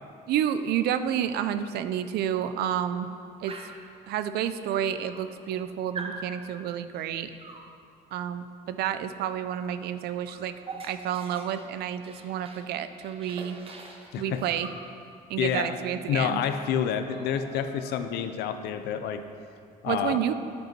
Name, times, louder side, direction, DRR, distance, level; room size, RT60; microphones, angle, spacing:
voice 1, 0.3-3.1 3.4-3.6 4.1-7.3 8.1-10.5 10.8-13.6 14.2-14.7 15.3-16.4 19.9-20.3, right 10 dB, 70° right, 11 dB, 0.5 m, -30 dB
Dog, 3.5-3.9 4.7-4.8 5.1-5.6 5.9-6.2 7.4-7.7 9.5-9.7 10.0-12.7 13.0-14.8 16.1-16.2 16.5-16.7 17.0-18.3, right 4 dB, 35° right, 0.9 m, -43 dB
voice 2, 14.1-14.4 15.4-15.8 16.1-19.2 19.8-20.2, left 8 dB, 75° left, 9 dB, 0.6 m, -28 dB
10.0 x 5.3 x 4.5 m, 2.4 s
cardioid pair, 110°, 17 cm